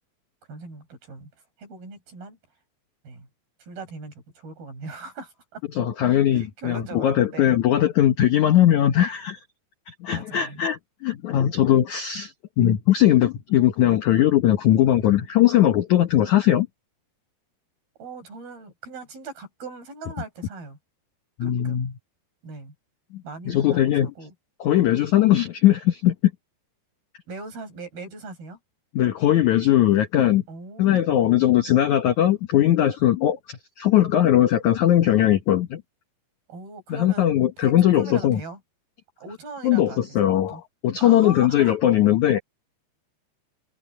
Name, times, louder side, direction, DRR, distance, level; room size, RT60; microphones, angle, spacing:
voice 1, 0.5-1.3 1.6-2.4 3.0-3.3 3.6-5.6 6.0-7.6 10.1-10.6 18.0-20.8 21.4-21.8 22.4-22.7 23.2-24.3 27.3-28.6 30.5-31.4 36.5-38.6 39.2-40.6 41.0-41.8, right 3 dB, 60° right, 9.1 m, -40 dB
voice 2, 5.8-9.4 9.9-16.7 21.4-21.9 23.1-24.1 24.6-26.3 28.9-30.4 30.8-35.8 36.9-38.4 39.6-42.4, left 12 dB, 70° left, 1.8 m, -20 dB
omnidirectional pair, 5.0 m